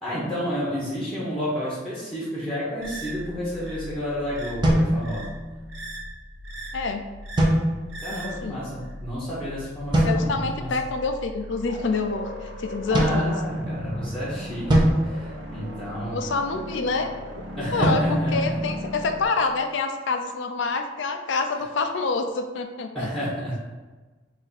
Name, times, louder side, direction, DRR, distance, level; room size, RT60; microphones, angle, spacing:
voice 1, 0.0-5.3 8.0-10.7 12.9-16.3 17.6-18.6 22.9-23.6, equal, ahead, -8 dB, 1.0 m, -31 dB
sound 1, 2.8-19.3, equal, 75° right, 0.8 m, -38 dB
sound 2, 4.6-5.7 7.4-8.2 9.9-10.6 12.9-14.0 14.7-16.2 17.8-19.3, right 1 dB, 25° right, 0.7 m, -24 dB
voice 2, 6.7-7.1 8.1-8.7 10.0-13.4 16.1-17.1 17.4-17.5 17.7-23.1, left 4 dB, 75° left, 6 dB, 0.4 m, -27 dB
4.1 x 2.6 x 4.1 m, 1.3 s
head